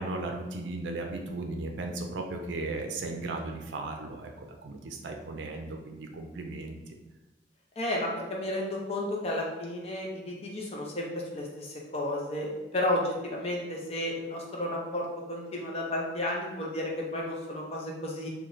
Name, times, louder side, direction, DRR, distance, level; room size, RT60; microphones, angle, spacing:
voice 1, 0.0-7.0, right 2 dB, 85° right, 3 dB, 0.4 m, -36 dB
voice 2, 7.8-18.3, left 1 dB, 35° left, -2 dB, 0.7 m, -32 dB
3.1 x 2.4 x 3.8 m, 1.1 s
head